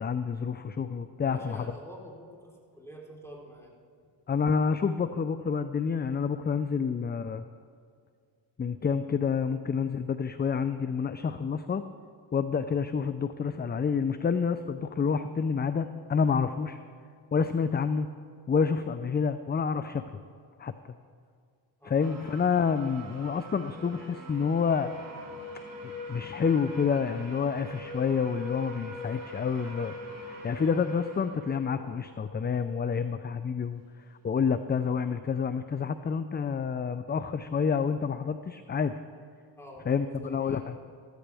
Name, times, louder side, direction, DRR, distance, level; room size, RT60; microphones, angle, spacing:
voice 1, 0.0-1.6 4.3-7.4 8.6-11.8 12.3-16.8 17.3-18.1 18.5-20.0 20.6-20.7 21.8-24.9 25.8-29.9 30.2-33.8 34.2-39.0 39.9-40.8, left 6 dB, 20° left, 11 dB, 0.4 m, -28 dB
voice 2, 1.2-3.7 21.8-22.1 39.6-40.6, equal, 5° left, -4 dB, 3.9 m, -47 dB
sound 1, 22.0-32.6, equal, 40° right, 3.0 m, -43 dB
14.5 x 14.0 x 3.5 m, 2.1 s
cardioid pair, 70°, 49 cm